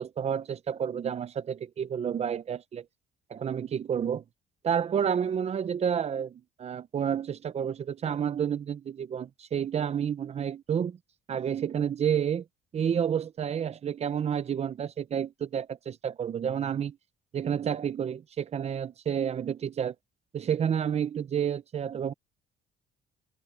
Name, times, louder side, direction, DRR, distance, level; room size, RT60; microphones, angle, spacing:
voice 1, 0.0-2.8 3.3-4.2 4.6-11.0 11.3-12.4 12.7-17.0 17.3-19.9 20.3-22.1, right 8 dB, 40° right, 0.8 m, -30 dB
cardioid pair, 110°, 17 cm